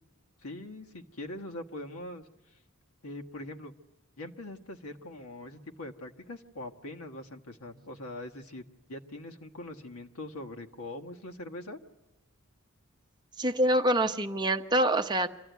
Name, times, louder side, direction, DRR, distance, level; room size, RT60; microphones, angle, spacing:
voice 1, 0.4-2.3 3.0-3.8 4.2-8.6 8.9-11.8, left 1 dB, 75° left, 4 dB, 1.4 m, -42 dB
voice 2, 13.4-15.3, right 1 dB, 20° right, 5 dB, 0.8 m, -25 dB
25.5 x 14.0 x 9.3 m, 1.1 s
head